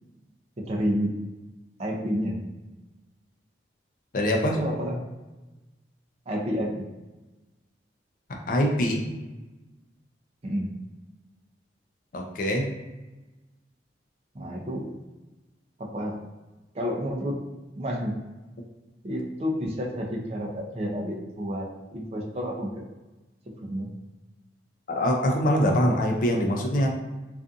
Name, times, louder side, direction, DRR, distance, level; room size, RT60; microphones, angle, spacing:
voice 1, 0.6-1.1 1.8-2.4 4.4-5.0 6.3-6.9 10.4-10.7 14.3-14.9 15.8-16.2 16.7-17.4 17.8-18.2 19.0-22.8 23.5-23.9, equal, 35° right, -1 dB, 0.5 m, -30 dB
voice 2, 4.1-4.6 8.5-9.0 12.1-12.7 24.9-26.9, equal, 45° left, 0 dB, 0.4 m, -23 dB
2.5 x 2.4 x 2.4 m, 1.1 s
head